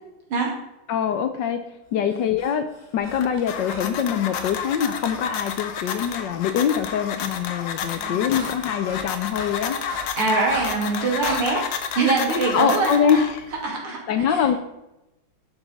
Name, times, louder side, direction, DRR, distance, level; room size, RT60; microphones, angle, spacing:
voice 1, 0.9-1.6 1.9-2.7 2.9-9.8 12.5-13.5 14.1-14.6, left 8 dB, 70° left, 8 dB, 1.2 m, -23 dB
Breathing, 2.1-5.3 6.0-6.2 6.5-11.5, left 2 dB, 20° left, 1.6 m, -39 dB
sound 1, 3.0-13.6, left 7 dB, 90° left, 1.8 m, -31 dB
voice 2, 8.0-8.4 10.1-11.7 11.9-13.2 13.6-14.0 14.3-14.4, right 3 dB, 85° right, -1 dB, 3.2 m, -23 dB
11.0 x 5.6 x 5.2 m, 0.93 s
omnidirectional pair, 2.3 m